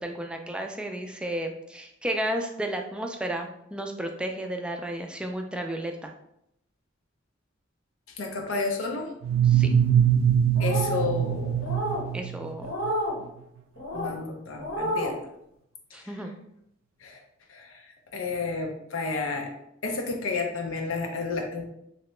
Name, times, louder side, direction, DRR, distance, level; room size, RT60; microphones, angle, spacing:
voice 1, 0.0-6.1 9.4-9.7 12.1-12.7 15.9-16.3, right 1 dB, 5° right, 3 dB, 0.3 m, -33 dB
voice 2, 8.2-9.1 10.6-11.6 13.9-15.2 16.0-16.2 17.0-17.2 17.5-17.9 18.1-19.5 19.8-21.6, left 4 dB, 90° left, 2 dB, 0.6 m, -31 dB
sound 1, 9.2-12.9, right 9 dB, 90° right, 0.3 m, -23 dB
sound 2, 10.5-11.1 11.6-12.0 12.6-13.2 13.8-14.1 14.6-15.1, equal, 70° left, 1.1 m, -30 dB
3.2 x 2.8 x 3.1 m, 0.78 s
head